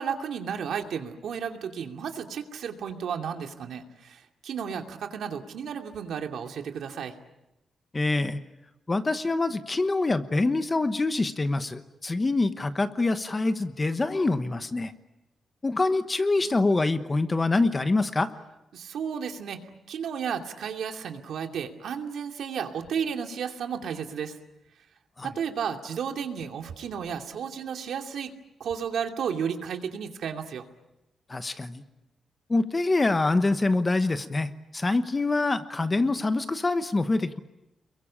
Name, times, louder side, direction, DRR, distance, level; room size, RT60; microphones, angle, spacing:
voice 1, 0.0-7.1 18.7-24.4 25.2-28.3 28.6-30.6, right 7 dB, 85° right, 4 dB, 2.6 m, -33 dB
voice 2, 7.9-8.4 8.9-14.9 15.6-18.3 25.2-25.3 31.3-31.8 32.5-37.4, left 2 dB, 20° left, 10 dB, 1.1 m, -25 dB
28.5 x 22.5 x 8.7 m, 0.92 s
wide cardioid pair, 145°, 0 cm